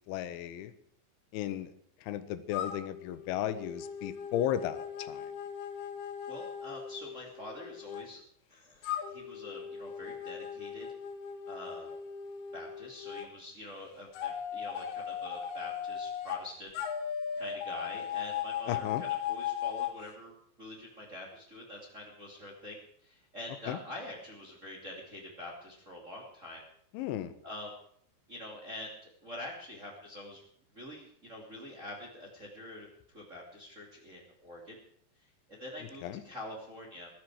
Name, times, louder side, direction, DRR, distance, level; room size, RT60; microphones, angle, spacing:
voice 1, 0.1-0.7 1.3-1.7 2.0-5.3 18.7-19.0 23.7-23.8 26.9-27.3 36.0-36.2, left 11 dB, 85° left, 12 dB, 3.3 m, -35 dB
sound 1, 2.5-8.0 8.8-13.3 14.1-16.4 16.7-20.0, left 8 dB, 65° left, 3.1 m, -38 dB
voice 2, 6.3-8.2 8.5-10.9 11.5-11.9 12.5-16.7 17.4-26.6 27.4-27.8 28.3-30.4 30.7-34.8 35.5-37.1, left 1 dB, 25° right, -1 dB, 2.0 m, -45 dB
20.0 x 12.0 x 4.8 m, 0.66 s
omnidirectional pair, 5.3 m